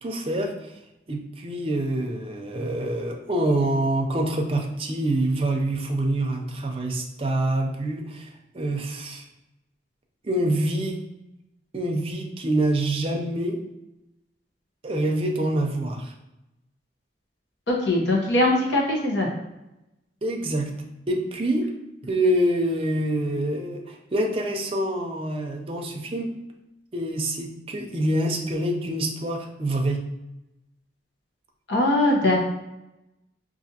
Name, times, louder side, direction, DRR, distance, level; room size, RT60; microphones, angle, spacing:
voice 1, 0.0-0.7 1.1-8.3 8.5-9.2 10.2-11.0 11.7-13.6 14.8-16.1 20.2-20.7 21.1-21.7 22.0-26.3 26.9-30.0, right 1 dB, 30° right, 2 dB, 0.5 m, -26 dB
voice 2, 17.7-19.3 31.7-32.4, left 1 dB, 75° left, -2 dB, 1.0 m, -21 dB
4.9 x 2.5 x 2.8 m, 0.94 s
head